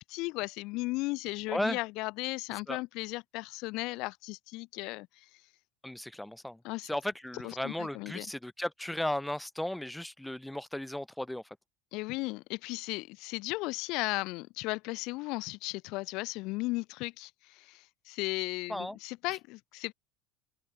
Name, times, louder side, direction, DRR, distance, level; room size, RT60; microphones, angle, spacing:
voice 1, 0.0-5.3 6.6-6.9 7.4-8.3 11.9-19.9, left 23 dB, 60° left, 0.4 m, -36 dB
voice 2, 1.5-1.8 2.7-2.8 5.8-6.6 6.9-11.4 18.7-19.0, left 1 dB, 5° left, 0.7 m, -35 dB
open air
hypercardioid pair, 75°, 0 cm